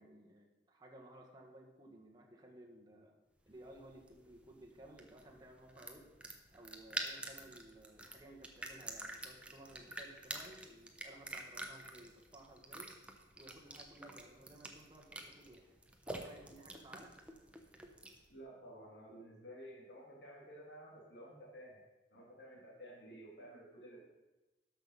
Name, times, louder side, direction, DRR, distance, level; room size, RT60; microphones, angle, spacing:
voice 1, 0.0-3.1 3.4-6.1 6.5-12.9 13.4-15.7 16.0-17.1, right 1 dB, 25° right, 0 dB, 1.6 m, -57 dB
sound 1, 3.5-18.3, right 1 dB, 5° right, 0.9 m, -48 dB
voice 2, 18.3-21.8 22.1-24.0, equal, 70° left, -4 dB, 2.4 m, -53 dB
12.5 x 5.9 x 5.5 m, 1.1 s
head